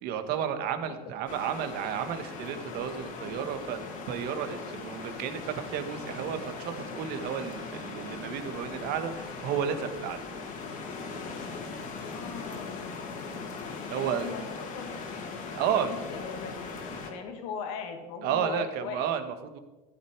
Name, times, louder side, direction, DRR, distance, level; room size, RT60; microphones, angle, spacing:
voice 1, 0.0-10.2 13.9-14.3 15.5-15.9 18.2-19.6, right 8 dB, 55° right, 8 dB, 1.5 m, -32 dB
sound 1, 1.3-17.1, left 4 dB, 45° left, 2.6 m, -39 dB
voice 2, 11.9-13.3 13.9-15.2 15.4-16.7 17.1-19.1, left 6 dB, 70° left, 4 dB, 2.2 m, -40 dB
14.0 x 10.0 x 4.7 m, 1.1 s
supercardioid pair, 135°, 19 cm